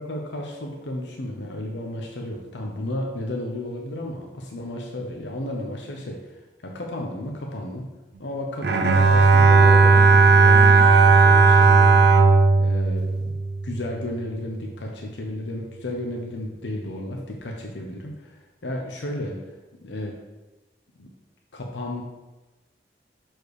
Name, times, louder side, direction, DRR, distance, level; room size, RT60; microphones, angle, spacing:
voice 1, 0.0-7.8 8.2-13.3 13.6-19.4 19.8-20.2 21.0-21.1 21.5-22.0, left 1 dB, 90° left, 0 dB, 0.8 m, -33 dB
Bowed string instrument, 8.6-13.9, right 4 dB, 70° right, 0.6 m, -15 dB
6.8 x 4.6 x 4.8 m, 1.1 s
head